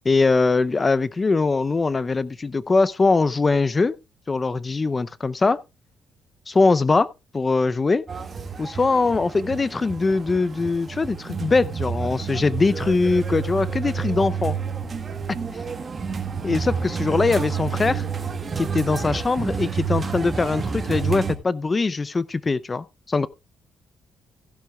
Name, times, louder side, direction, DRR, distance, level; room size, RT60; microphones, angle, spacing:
voice 1, 0.0-4.0 4.3-5.6 6.5-7.1 7.3-8.0 8.6-14.6 16.4-18.0 18.6-23.3, left 3 dB, 30° left, 0.6 m, -22 dB
sound 1, 8.1-21.4, right 6 dB, 40° right, 2.0 m, -29 dB
15.0 x 11.5 x 2.3 m
cardioid pair, 90°, 0 cm